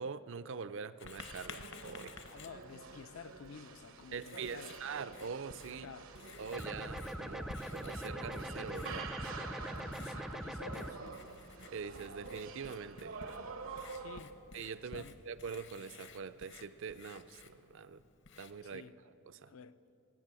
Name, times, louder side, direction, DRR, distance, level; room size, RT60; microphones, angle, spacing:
voice 1, 0.0-2.2 4.1-5.9 6.4-9.1 11.7-13.2 14.5-18.0 18.4-18.9 19.2-19.5, right 5 dB, 65° right, 0.5 m, -44 dB
Writing, 1.0-18.8, left 4 dB, 60° left, 0.9 m, -54 dB
sound 1, 1.1-14.2, right 4 dB, 80° right, 0.9 m, -48 dB
voice 2, 2.3-4.8 5.7-6.1 9.7-11.3 13.9-14.4 14.9-15.2 18.6-19.0 19.5-19.8, left 5 dB, 75° left, 0.5 m, -52 dB
sound 2, 6.5-10.9, equal, ahead, 0.4 m, -42 dB
19.5 x 8.9 x 7.5 m
head